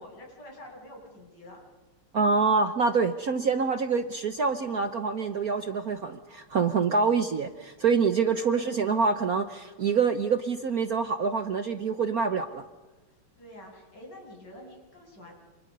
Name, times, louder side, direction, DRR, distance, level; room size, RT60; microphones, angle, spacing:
voice 1, 0.0-1.6 8.3-8.6 13.4-15.3, left 1 dB, 50° left, -1 dB, 8.6 m, -47 dB
voice 2, 2.1-12.6, right 5 dB, 50° right, 8 dB, 1.3 m, -26 dB
29.0 x 28.0 x 5.5 m, 1.2 s
omnidirectional pair, 2.3 m